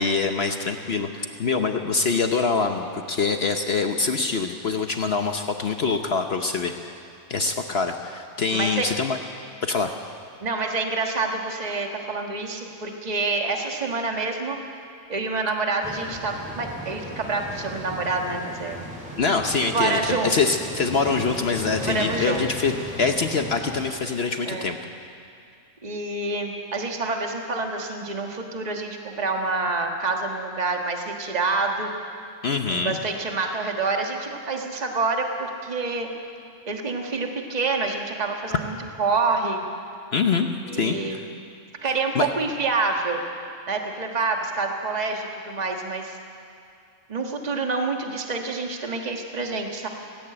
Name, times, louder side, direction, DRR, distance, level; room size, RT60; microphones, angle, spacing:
voice 1, 0.0-6.9 7.3-9.2 9.6-9.9 19.2-24.8 32.4-33.0 40.1-41.2 42.1-42.3, left 4 dB, 55° left, 5 dB, 1.1 m, -24 dB
voice 2, 8.5-8.9 10.4-14.6 15.1-18.9 19.5-20.3 21.9-22.4 24.4-24.7 25.8-31.9 32.7-36.1 36.7-39.6 40.7-41.2 41.8-43.2 43.7-46.2 47.1-49.9, right 3 dB, 30° right, 2 dB, 1.6 m, -27 dB
sound 1, 15.8-23.9, equal, 5° right, 3.6 m, -36 dB
17.5 x 17.0 x 8.8 m, 2.5 s
omnidirectional pair, 1.4 m